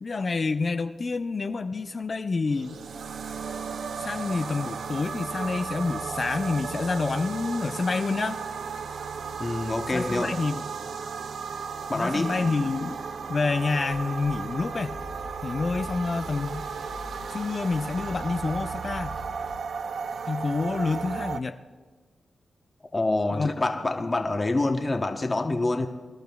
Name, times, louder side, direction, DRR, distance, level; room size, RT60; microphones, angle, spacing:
voice 1, 0.0-2.8 4.0-8.4 9.9-10.6 11.9-13.0 13.3-15.0 15.4-16.6 17.3-19.2 20.3-21.6 23.3-23.5, left 4 dB, 55° left, 8 dB, 0.5 m, -28 dB
sound 1, 2.5-21.4, right 5 dB, 80° right, 0.5 m, -35 dB
voice 2, 9.4-10.3 11.9-12.3 22.9-25.9, left 2 dB, 40° left, 4 dB, 0.9 m, -26 dB
sound 2, 13.9-19.6, left 3 dB, 75° left, 1.4 m, -45 dB
24.0 x 12.0 x 2.3 m, 1.4 s
cardioid pair, 45°, 0 cm